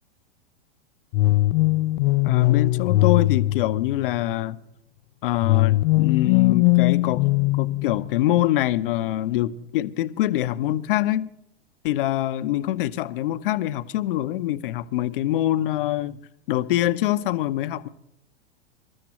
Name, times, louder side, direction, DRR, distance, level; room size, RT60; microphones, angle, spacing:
sound 1, 1.1-4.3 5.4-8.3, left 19 dB, 35° left, 0.4 m, -20 dB
voice 1, 2.2-4.6 5.2-7.2 7.5-11.3 11.8-16.2 16.5-17.9, left 14 dB, 55° left, 0.8 m, -24 dB
27.0 x 13.5 x 3.0 m
figure-of-eight pair, 100°, 32 cm